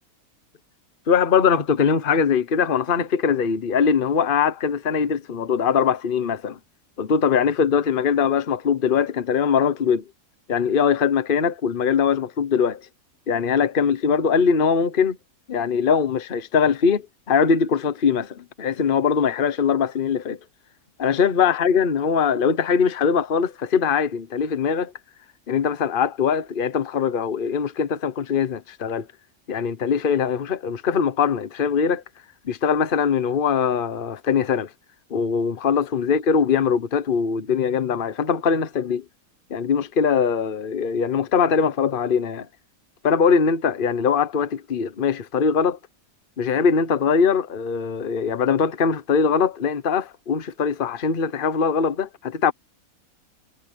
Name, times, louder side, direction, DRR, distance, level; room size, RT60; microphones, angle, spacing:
voice 1, 1.1-6.6 7.0-10.0 10.5-12.8 13.3-15.2 15.5-20.4 21.0-24.9 25.5-29.1 29.5-32.0 32.5-34.7 35.1-39.0 39.5-42.5 43.0-45.8 46.4-52.5, left 6 dB, 40° left, 1.2 m, -21 dB
omnidirectional pair, 1.5 m